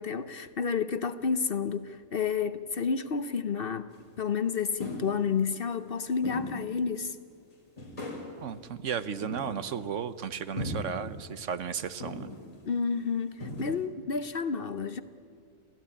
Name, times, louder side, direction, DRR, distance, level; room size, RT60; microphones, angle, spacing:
voice 1, 0.0-3.9 4.2-7.2 12.7-15.0, left 6 dB, 50° left, 0.9 m, -30 dB
sound 1, 4.0-4.1 4.8-5.2 6.2-6.6 7.1-7.2 7.8-8.3 9.2-9.8 10.6-11.0 12.0-12.5 13.0-13.1 13.4-13.8, left 1 dB, 25° left, 3.7 m, -37 dB
voice 2, 8.4-12.3, right 7 dB, 65° right, 1.2 m, -34 dB
27.0 x 16.0 x 9.9 m
omnidirectional pair, 1.4 m